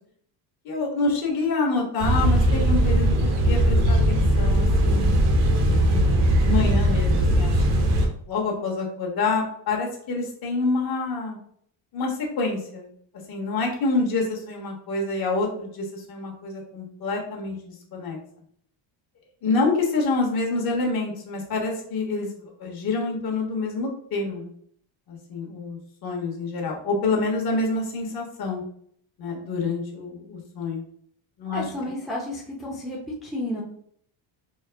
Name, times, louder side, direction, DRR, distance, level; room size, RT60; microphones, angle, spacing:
voice 1, 0.6-5.2 5.6-7.9 8.3-11.4 11.9-12.9 13.3-18.2 19.4-24.5 25.1-28.6 29.2-30.8 31.4-31.9, left 3 dB, 45° left, -1 dB, 1.4 m, -27 dB
sound 1, 2.0-8.1, right 1 dB, 80° right, 1.0 m, -19 dB
voice 2, 31.5-33.6, left 1 dB, ahead, -5 dB, 0.6 m, -31 dB
4.6 x 2.1 x 3.4 m, 0.64 s
cardioid pair, 125°, 49 cm